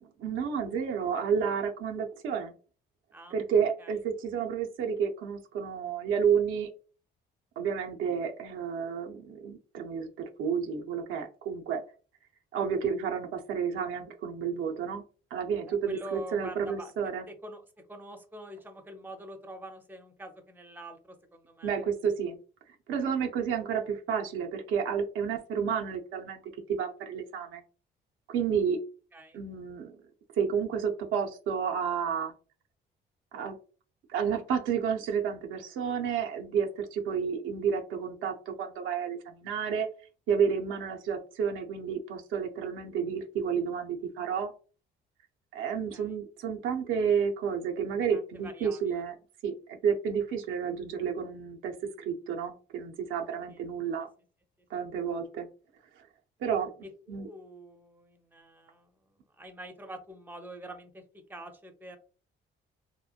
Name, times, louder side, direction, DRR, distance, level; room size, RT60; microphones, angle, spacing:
voice 1, 0.2-2.5 3.3-6.7 7.6-10.1 10.4-11.8 12.5-15.0 15.3-17.2 21.6-22.4 22.9-26.4 26.7-27.6 28.3-28.8 29.3-30.0 30.4-32.3 33.3-33.6 34.1-39.9 40.3-44.5 45.5-49.1 49.4-54.1 54.7-55.5 56.4-56.7 57.1-57.3, right 7 dB, 85° right, 3 dB, 0.5 m, -30 dB
voice 2, 15.9-16.9 17.3-17.6 17.9-21.7 29.1-29.4 45.9-46.1 48.1-49.0 53.5-53.6 57.1-58.9 59.4-61.0 61.3-62.0, right 1 dB, 10° right, 6 dB, 0.6 m, -45 dB
2.9 x 2.1 x 2.4 m, 0.37 s
cardioid pair, 90°, 20 cm